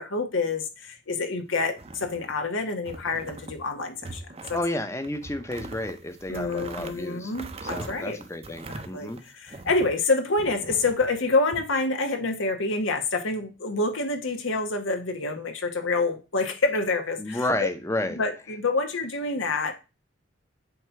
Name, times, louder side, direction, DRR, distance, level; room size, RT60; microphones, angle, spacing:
voice 1, 0.0-4.2 4.5-4.6 6.3-8.2 8.7-17.7 18.1-19.7, left 3 dB, 85° left, 1.1 m, -27 dB
sound 1, 1.7-2.5 2.9-3.6 4.0-4.7 5.0-10.0 10.4-11.6, right 2 dB, 30° right, 0.6 m, -41 dB
voice 2, 4.5-7.3 7.6-9.2 17.2-18.2, left 1 dB, 15° left, 0.7 m, -31 dB
7.8 x 2.8 x 5.8 m
head